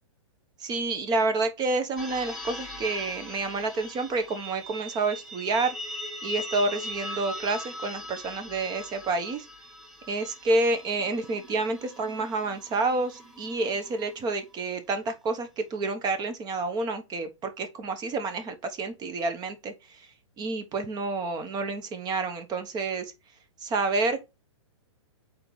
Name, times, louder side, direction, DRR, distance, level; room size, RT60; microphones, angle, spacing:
voice 1, 0.6-5.7 6.2-9.5 10.1-19.7 20.4-23.1 23.6-24.3, right 3 dB, 25° right, 1.1 m, -29 dB
sound 1, 2.0-14.5, left 1 dB, ahead, 1.6 m, -40 dB
4.3 x 4.0 x 5.4 m
hypercardioid pair, 125°, 16 cm